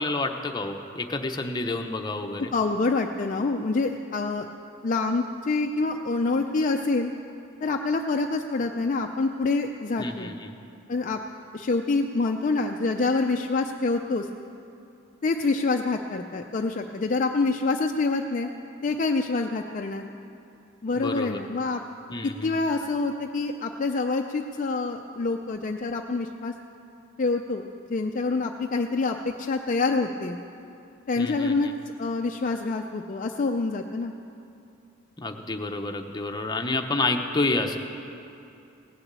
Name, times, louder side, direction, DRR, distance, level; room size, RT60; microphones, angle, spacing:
voice 1, 0.0-2.5 10.0-10.6 20.9-21.4 22.1-22.5 31.2-31.7 35.2-37.8, left 2 dB, 20° left, 3 dB, 0.8 m, -29 dB
voice 2, 2.5-4.5 4.8-7.1 7.6-10.3 10.9-11.2 11.5-14.3 15.2-18.5 18.8-20.1 20.8-21.8 22.2-26.5 27.2-30.4 31.1-31.7 32.0-34.1, left 3 dB, 40° left, 3 dB, 0.4 m, -26 dB
17.5 x 7.0 x 8.2 m, 2.7 s
head